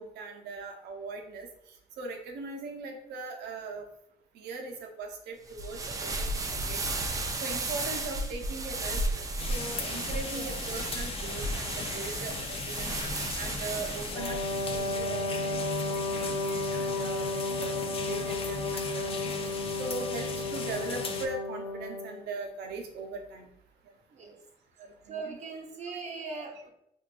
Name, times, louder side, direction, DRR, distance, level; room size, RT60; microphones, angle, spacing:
voice 1, 0.0-3.8 4.3-12.9 13.4-14.4 14.7-19.3 19.8-23.5 24.8-25.4, right 3 dB, 80° right, 3 dB, 0.7 m, -40 dB
sound 1, 5.5-15.0, right 2 dB, 20° right, 0.4 m, -34 dB
sound 2, 9.4-21.3, left 4 dB, 35° left, 0.5 m, -38 dB
Wind instrument woodwind instrument, 14.1-22.2, left 2 dB, 55° left, 0.9 m, -33 dB
voice 2, 25.1-26.7, right 4 dB, 40° right, 1 dB, 0.8 m, -40 dB
4.5 x 2.6 x 2.5 m, 0.78 s
cardioid pair, 110°, 17 cm